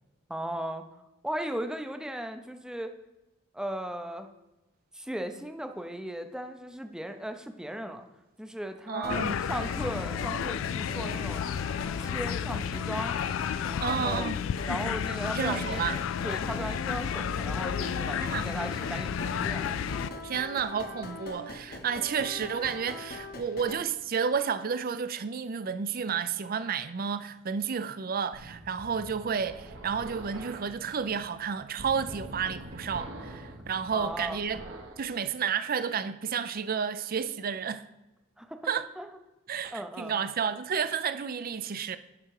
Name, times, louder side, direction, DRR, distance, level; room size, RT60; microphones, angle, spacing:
voice 1, 0.3-0.8 1.2-3.0 3.5-4.3 4.9-8.1 8.4-11.5 12.0-13.2 13.8-14.3 14.7-15.9 16.2-19.8 33.9-34.4 38.4-38.6 39.0-39.1 39.7-40.2, right 1 dB, 5° right, 0.6 m, -37 dB
voice 2, 8.9-9.4 13.8-14.4 15.3-16.0 18.2-18.5 20.2-34.6 35.0-37.8 38.7-38.9 39.5-42.0, right 6 dB, 45° right, 0.5 m, -31 dB
sound 1, 9.0-23.8, left 2 dB, 50° left, 1.0 m, -41 dB
sound 2, 9.1-20.1, left 8 dB, 75° left, 0.3 m, -32 dB
sound 3, 28.3-35.1, right 1 dB, 75° right, 1.2 m, -44 dB
9.8 x 5.6 x 4.8 m
head